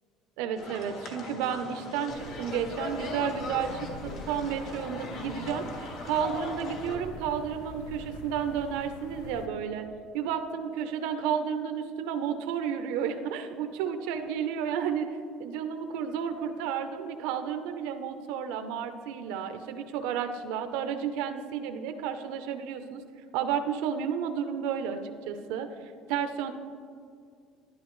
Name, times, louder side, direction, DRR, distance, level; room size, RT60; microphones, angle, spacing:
voice 1, 0.4-9.9 10.1-23.0 23.3-26.5, right 8 dB, 85° right, 7 dB, 0.6 m, -32 dB
sound 1, 0.5-7.0, left 2 dB, 60° left, 1.6 m, -39 dB
sound 2, 2.1-9.5, left 2 dB, 90° left, 0.9 m, -44 dB
11.0 x 11.0 x 3.1 m, 2.3 s
cardioid pair, 145°, 0 cm